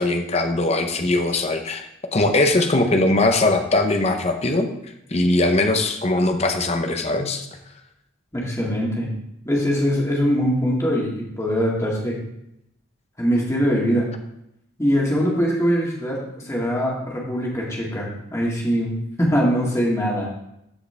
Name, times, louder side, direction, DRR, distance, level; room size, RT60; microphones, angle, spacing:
voice 1, 0.0-4.7 5.1-7.5, left 2 dB, 30° left, 5 dB, 0.8 m, -20 dB
voice 2, 8.3-9.1 9.4-12.2 13.2-14.1 14.8-20.3, equal, 15° left, -4 dB, 1.9 m, -22 dB
14.0 x 4.8 x 3.4 m, 0.81 s
head